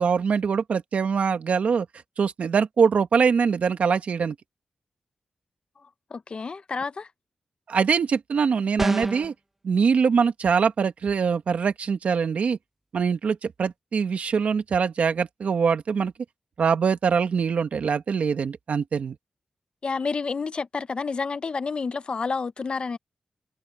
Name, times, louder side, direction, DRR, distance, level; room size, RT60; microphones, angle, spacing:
voice 1, 0.0-1.9 2.2-4.4 7.7-9.3 9.6-12.6 12.9-16.1 16.6-19.2, right 6 dB, 75° right, 1.8 m, -23 dB
voice 2, 5.8-7.1 19.8-23.0, left 4 dB, 45° left, 0.7 m, -30 dB
sound 1, 8.8-9.3, right 1 dB, 10° right, 0.4 m, -27 dB
wide cardioid pair, 120°, 2 cm